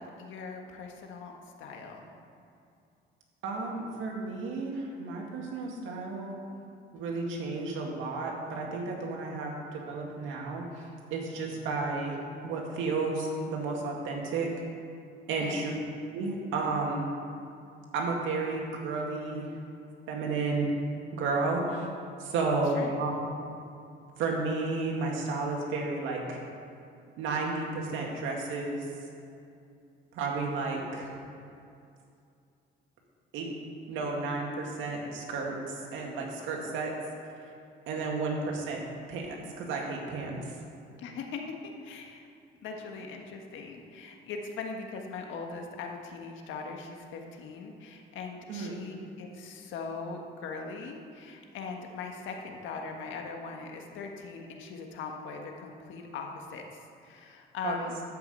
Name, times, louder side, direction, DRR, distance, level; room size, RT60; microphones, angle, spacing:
voice 1, 0.0-1.3 1.6-2.1 15.4-15.6 22.7-23.0 41.0-41.4 41.8-42.3 42.6-58.0, left 4 dB, 80° left, 2 dB, 1.6 m, -40 dB
voice 2, 3.4-6.4 6.9-10.8 11.1-12.2 12.4-14.5 15.3-15.7 16.1-17.1 17.9-19.5 20.1-20.7 21.1-21.9 22.2-23.1 24.2-26.4 27.2-28.8 30.1-31.1 33.3-33.5 33.9-35.6 35.9-36.9 37.9-38.8 39.1-40.4 48.5-48.8 57.6-57.9, right 3 dB, 90° right, 0 dB, 2.1 m, -32 dB
13.0 x 5.9 x 8.1 m, 2.5 s
cardioid pair, 110°, 20 cm